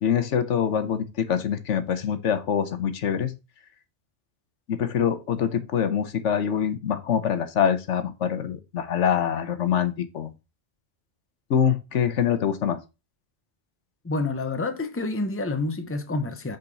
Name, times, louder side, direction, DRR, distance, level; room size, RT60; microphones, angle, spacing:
voice 1, 0.0-3.3 4.7-10.3 11.5-12.8, left 8 dB, 90° left, 1.2 m, -24 dB
voice 2, 14.0-16.6, left 3 dB, 15° left, 0.8 m, -28 dB
5.7 x 5.2 x 4.0 m
omnidirectional pair, 1.2 m